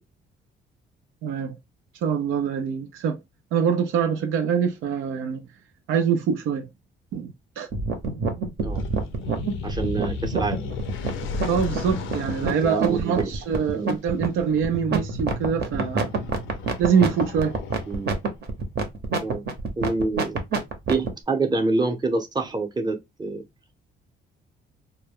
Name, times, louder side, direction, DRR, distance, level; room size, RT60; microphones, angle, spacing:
voice 1, 1.2-1.6 2.0-3.2 3.5-5.4 5.9-6.7 7.1-7.7 11.5-16.1 16.8-17.6, right 7 dB, 80° right, 0.4 m, -24 dB
sound 1, 7.7-21.1, right 4 dB, 55° right, 0.8 m, -26 dB
sound 2, 8.7-18.3, left 5 dB, 80° left, 0.5 m, -36 dB
voice 2, 9.6-10.6 12.6-13.3 13.7-14.0 17.9-18.1 19.2-19.4 19.8-20.4 20.9-23.4, right 3 dB, 20° right, 0.7 m, -26 dB
2.1 x 2.1 x 3.4 m
cardioid pair, 90°, 20 cm